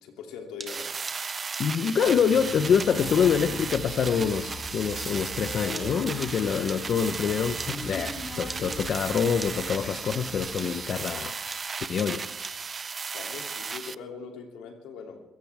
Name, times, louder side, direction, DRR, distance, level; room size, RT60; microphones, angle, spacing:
voice 1, 0.0-1.0 13.1-15.2, left 6 dB, 85° left, 3 dB, 2.9 m, -41 dB
sound 1, 0.6-7.3 7.6-10.3 10.6-13.2, right 3 dB, 20° right, 2.1 m, -43 dB
sound 2, 0.7-14.0, right 5 dB, 40° right, 0.5 m, -35 dB
voice 2, 1.6-11.3 11.9-12.3, left 7 dB, 60° left, 9 dB, 0.9 m, -26 dB
Human voice, 1.8-11.3, left 1 dB, 35° left, 6.3 m, -41 dB
22.0 x 16.5 x 3.5 m, 0.90 s
cardioid pair, 80°, 0 cm